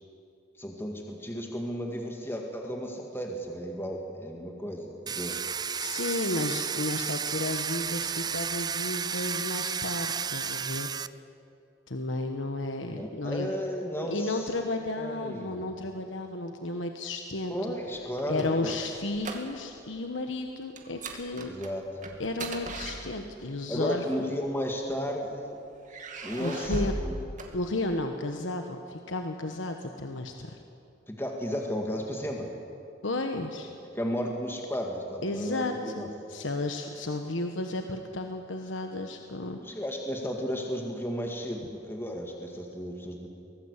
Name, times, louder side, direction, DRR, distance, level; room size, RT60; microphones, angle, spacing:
voice 1, 0.6-5.4 12.9-14.5 14.9-15.7 17.5-18.8 21.5-21.8 23.7-25.6 26.2-27.2 31.1-32.5 34.0-36.1 39.6-43.3, equal, 10° left, 1 dB, 1.9 m, -34 dB
Domestic sounds home sounds, 5.1-11.1, right 7 dB, 20° right, 0.4 m, -32 dB
voice 2, 5.7-11.0 11.9-13.5 14.0-17.6 18.3-21.5 22.2-24.0 26.4-26.9 27.5-30.6 33.0-33.7 35.2-39.8, left 2 dB, 80° left, 5 dB, 1.3 m, -33 dB
sound 1, 18.0-19.9 20.1-20.4 20.8-23.5 24.4-25.3 25.8-28.1, right 2 dB, 40° right, 2.4 m, -38 dB
24.0 x 18.0 x 8.2 m, 2.7 s
head